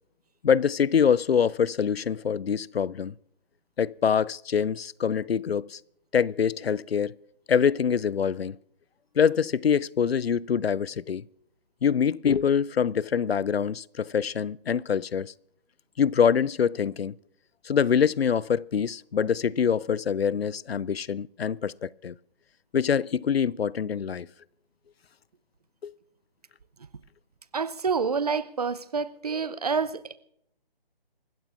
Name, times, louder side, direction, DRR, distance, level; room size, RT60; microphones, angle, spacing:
voice 1, 0.4-3.1 3.8-5.8 6.1-7.1 7.5-8.6 9.2-11.2 11.8-15.3 16.0-17.1 17.7-22.1 22.7-24.3 25.8-25.9, left 7 dB, 80° left, 0.5 m, -25 dB
voice 2, 27.5-30.2, right 5 dB, 40° right, 0.6 m, -28 dB
27.0 x 15.5 x 2.5 m
figure-of-eight pair, 155°, 30 cm